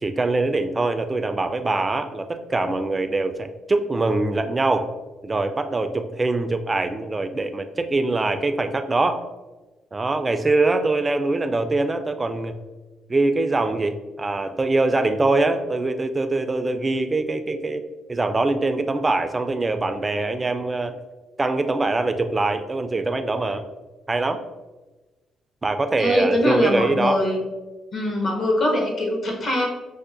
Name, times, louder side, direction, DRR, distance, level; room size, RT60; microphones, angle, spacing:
voice 1, 0.0-4.9 5.2-9.2 9.9-12.6 13.1-17.8 18.1-20.9 21.4-23.6 24.1-24.4 25.6-27.2, right 2 dB, 25° right, 8 dB, 0.3 m, -23 dB
voice 2, 26.0-27.4 27.9-29.7, left 1 dB, 55° left, 0 dB, 0.9 m, -22 dB
5.4 x 2.0 x 2.5 m, 1.2 s
cardioid pair, 90°, 0 cm